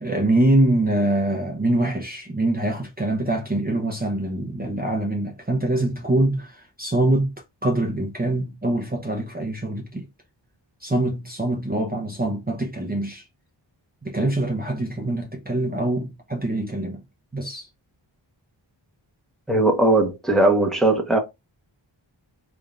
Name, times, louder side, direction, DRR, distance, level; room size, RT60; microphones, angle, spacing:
voice 1, 0.0-7.3 7.6-10.1 10.8-13.2 14.0-17.0 17.3-17.7, right 1 dB, 20° right, 0.9 m, -24 dB
voice 2, 19.5-21.2, right 2 dB, ahead, 1.0 m, -19 dB
3.6 x 3.5 x 2.5 m
wide cardioid pair, 85°, 47 cm